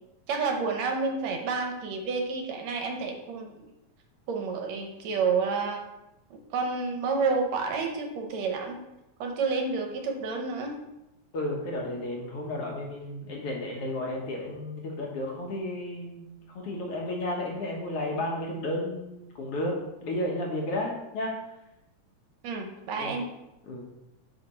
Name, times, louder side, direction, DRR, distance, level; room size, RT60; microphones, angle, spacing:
voice 1, 0.3-3.7 4.3-5.8 6.5-8.8 9.2-10.8 22.4-23.3, right 4 dB, 70° right, 3 dB, 2.0 m, -29 dB
voice 2, 11.3-21.4 23.0-23.2 23.7-23.8, left 1 dB, 60° left, -1 dB, 1.9 m, -33 dB
6.7 x 5.8 x 4.2 m, 0.92 s
omnidirectional pair, 3.3 m